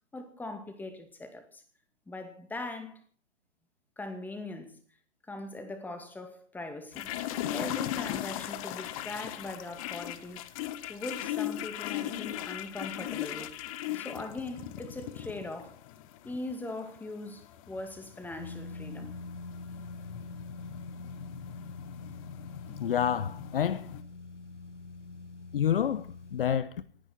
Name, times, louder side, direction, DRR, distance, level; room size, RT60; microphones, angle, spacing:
voice 1, 0.1-1.6 2.1-3.0 4.0-4.8 5.3-7.2 7.5-10.4 10.9-13.5 13.9-15.8 16.2-19.1 22.7-22.9, left 2 dB, 5° left, 2.3 m, -40 dB
sound 1, 6.9-24.0, left 13 dB, 30° left, 1.3 m, -39 dB
sound 2, 18.4-26.6, left 3 dB, 85° left, 1.4 m, -44 dB
voice 2, 22.8-23.9 25.5-26.7, left 9 dB, 50° left, 1.0 m, -28 dB
28.5 x 10.0 x 4.4 m
figure-of-eight pair, 125°, 35 cm